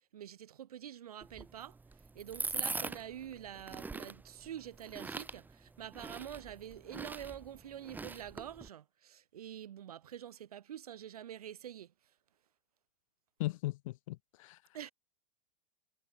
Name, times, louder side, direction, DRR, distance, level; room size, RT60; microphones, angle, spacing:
voice 1, 0.1-1.8 2.1-11.9 14.7-14.9, right 10 dB, 70° right, 1.0 m, -46 dB
sound 1, 1.2-8.7, right 3 dB, 10° right, 1.0 m, -43 dB
voice 2, 13.4-14.6, left 18 dB, 55° left, 1.2 m, -38 dB
figure-of-eight pair, 95°, 20 cm